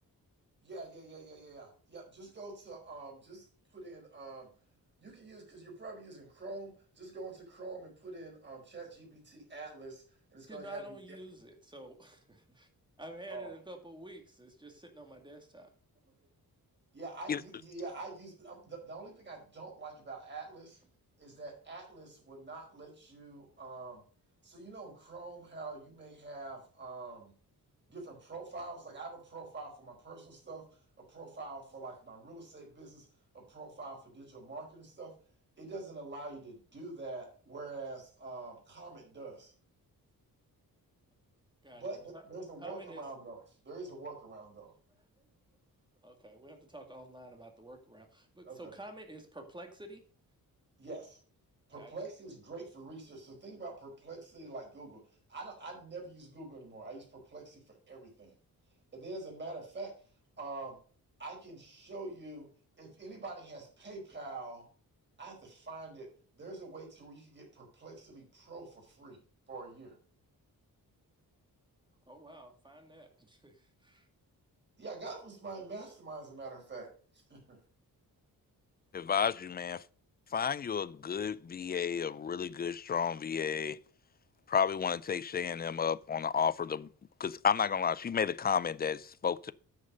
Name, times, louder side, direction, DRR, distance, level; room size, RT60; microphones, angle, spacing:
voice 1, 0.6-3.5 3.7-4.5 5.0-10.0 10.3-11.2 13.3-13.5 16.9-20.8 21.2-24.0 24.4-27.3 27.9-30.6 31.0-33.1 33.3-35.1 35.6-39.5 41.7-44.7 48.4-48.7 50.8-51.2 51.7-55.0 55.3-58.3 58.9-59.9 60.4-60.8 61.2-62.5 62.8-64.7 65.2-66.1 66.4-69.2 69.5-70.0 74.8-77.6, right 3 dB, 30° right, 4.9 m, -45 dB
voice 2, 10.5-12.7 13.0-15.7 41.6-42.2 42.6-43.0 46.0-50.0 51.8-51.9 72.1-74.1, right 1 dB, 10° right, 2.1 m, -50 dB
voice 3, 78.9-79.8 80.3-83.8 84.5-86.9 87.2-89.5, left 7 dB, 25° left, 0.4 m, -32 dB
9.8 x 6.5 x 5.2 m
wide cardioid pair, 140°, 36 cm